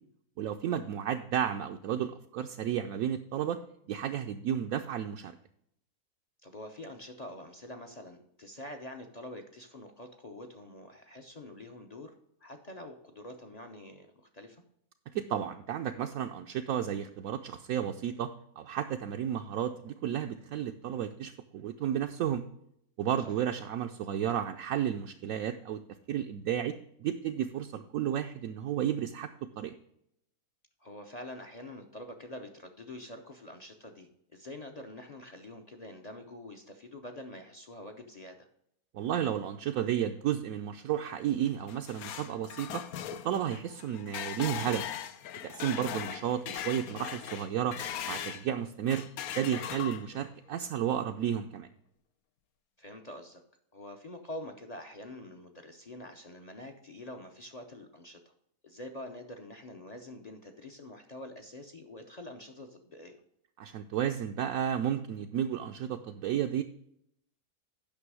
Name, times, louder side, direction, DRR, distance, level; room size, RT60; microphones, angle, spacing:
voice 1, 0.4-3.6 3.9-5.4 15.1-18.3 18.6-22.4 23.0-25.8 26.1-29.7 38.9-42.8 43.2-44.8 45.4-47.8 48.1-49.0 49.4-51.7 63.6-66.6, right 10 dB, 70° right, 4 dB, 1.0 m, -32 dB
voice 2, 6.4-12.1 12.4-14.6 23.2-23.4 30.8-38.5 45.6-45.9 52.8-53.4 53.7-58.2 58.6-63.2, left 1 dB, 40° left, 5 dB, 0.6 m, -46 dB
sound 1, 41.5-48.5 48.9-50.3, left 10 dB, 75° left, 1.1 m, -39 dB
8.9 x 6.0 x 4.7 m, 0.75 s
omnidirectional pair, 1.6 m